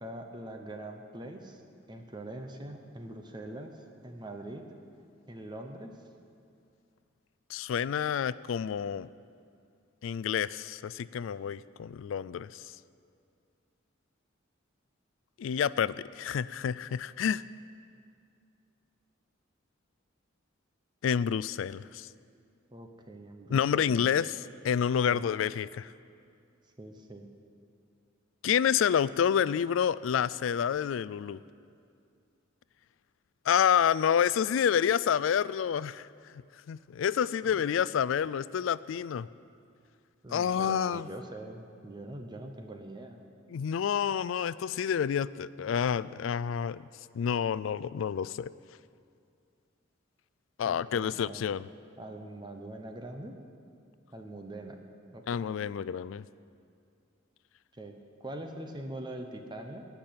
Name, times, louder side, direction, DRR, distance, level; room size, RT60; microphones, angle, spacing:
voice 1, 0.0-1.6 1.9-4.7 5.3-6.0 22.7-24.0 25.1-25.2 26.8-27.3 37.4-37.6 40.2-43.2 50.7-51.5 52.0-53.4 54.1-54.8 55.1-55.4 57.7-59.9, right 1 dB, 20° right, 5 dB, 0.8 m, -43 dB
voice 2, 7.5-9.1 10.0-12.6 15.4-17.4 21.0-22.1 23.5-24.3 24.6-25.9 28.4-31.4 33.5-36.1 36.7-39.3 40.3-41.1 43.5-46.9 47.1-48.5 50.6-51.7 55.3-56.2, left 8 dB, 75° left, 18 dB, 0.3 m, -28 dB
17.5 x 6.0 x 8.6 m, 2.4 s
head